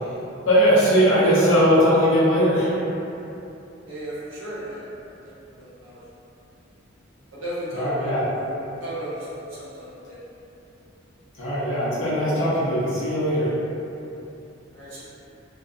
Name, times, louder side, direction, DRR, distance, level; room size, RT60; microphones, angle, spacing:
voice 1, 0.4-2.7 7.7-8.2 11.4-13.5, equal, 75° left, -10 dB, 0.7 m, -19 dB
voice 2, 3.9-4.8 5.6-6.0 7.4-9.2 9.6-10.1 14.7-15.0, equal, 85° right, -10 dB, 0.8 m, -34 dB
2.7 x 2.1 x 2.4 m, 2.9 s
head